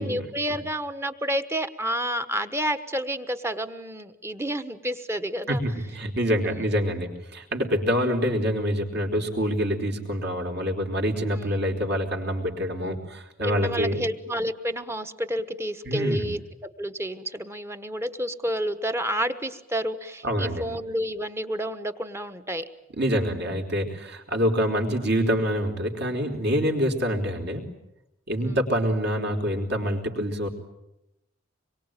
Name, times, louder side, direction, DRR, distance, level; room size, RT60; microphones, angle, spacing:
voice 1, 0.0-5.6 6.4-6.7 11.3-11.6 12.8-13.0 13.4-16.4 16.8-22.6 28.4-28.6, equal, 15° right, 10 dB, 1.3 m, -30 dB
voice 2, 5.5-14.0 15.8-16.3 20.2-20.6 23.0-27.7 28.3-30.5, equal, 55° right, 2 dB, 4.2 m, -26 dB
26.0 x 23.0 x 9.0 m, 0.90 s
head